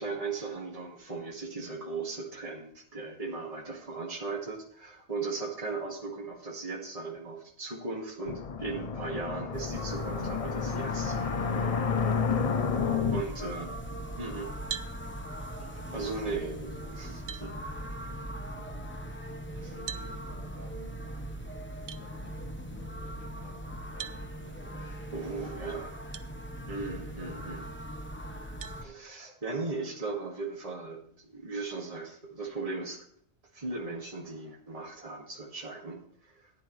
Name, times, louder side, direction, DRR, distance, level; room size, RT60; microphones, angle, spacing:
voice 1, 0.0-11.2 13.1-13.7 14.2-14.5 15.9-17.5 19.5-19.7 24.8-26.1 26.7-27.7 28.8-33.1 33.5-36.5, right 3 dB, 30° right, -1 dB, 2.1 m, -37 dB
sound 1, 8.3-13.2, left 6 dB, 40° left, 0.5 m, -30 dB
sound 2, 9.5-28.8, right 1 dB, 10° left, 1.0 m, -40 dB
voice 2, 12.7-13.9 14.4-14.6 15.6-18.7 19.0-21.4 21.8-25.0 25.3-25.6, left 1 dB, 10° right, -2 dB, 2.5 m, -54 dB
sound 3, 14.7-15.0 16.6-16.7 17.3-17.5 19.9-20.1 21.9-22.0 24.0-24.2 26.1-26.3 26.9-27.0 28.6-28.8, right 10 dB, 70° right, 0.9 m, -39 dB
14.0 x 9.5 x 3.2 m, 0.63 s
omnidirectional pair, 1.2 m